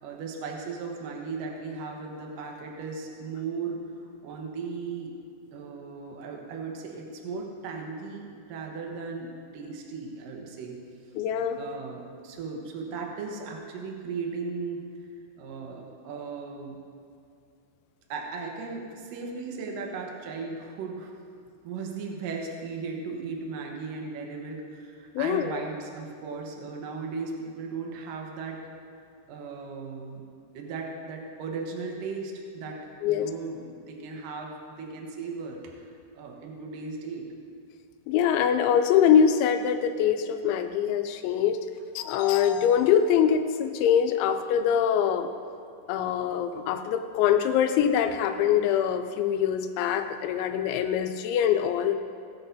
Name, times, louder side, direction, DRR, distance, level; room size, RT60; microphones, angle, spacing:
voice 1, 0.0-5.2 5.5-10.8 11.6-14.9 15.4-16.8 18.1-21.1 21.6-28.7 29.3-30.2 30.5-35.9 36.1-37.3, right 4 dB, 70° right, 0 dB, 2.1 m, -37 dB
voice 2, 11.2-11.6 25.2-25.7 33.0-33.3 38.1-41.6 42.0-45.3 45.9-52.0, left 8 dB, 85° left, 7 dB, 2.9 m, -24 dB
17.5 x 10.5 x 2.7 m, 2.4 s
omnidirectional pair, 5.5 m